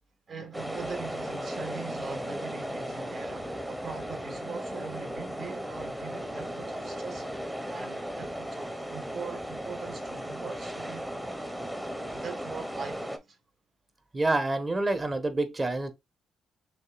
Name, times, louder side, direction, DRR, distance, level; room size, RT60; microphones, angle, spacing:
voice 1, 0.3-7.3 7.7-11.1 12.1-13.4, right 5 dB, 50° right, 1.9 m, -42 dB
sound 1, 0.5-13.2, equal, 5° right, 1.0 m, -36 dB
voice 2, 14.1-15.9, right 2 dB, 25° right, 1.2 m, -27 dB
6.4 x 2.7 x 2.5 m
cardioid pair, 90°, 0 cm